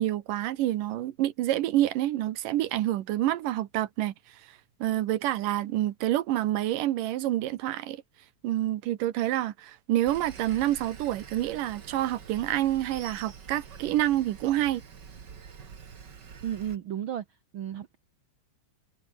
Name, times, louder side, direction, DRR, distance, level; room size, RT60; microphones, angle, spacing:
voice 1, 0.0-4.1 4.8-8.0 8.4-14.8, right 14 dB, 80° right, 2.7 m, -27 dB
Sawing, 10.0-16.8, right 6 dB, 40° right, 2.1 m, -46 dB
voice 2, 16.4-18.0, right 10 dB, 65° right, 1.3 m, -34 dB
omnidirectional pair, 3.8 m